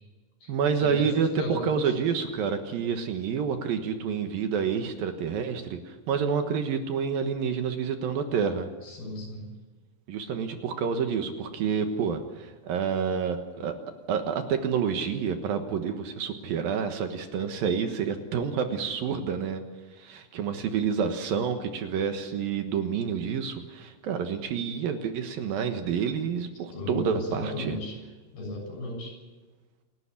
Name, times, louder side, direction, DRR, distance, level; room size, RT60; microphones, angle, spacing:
voice 1, 0.5-8.7 10.1-13.8 14.1-19.6 20.0-27.8, right 6 dB, 65° right, 7 dB, 2.9 m, -28 dB
voice 2, 1.3-1.8 8.8-9.5 26.7-28.0 28.3-29.1, left 1 dB, 70° left, 2 dB, 9.2 m, -35 dB
28.5 x 12.0 x 8.4 m, 1.3 s
omnidirectional pair, 4.7 m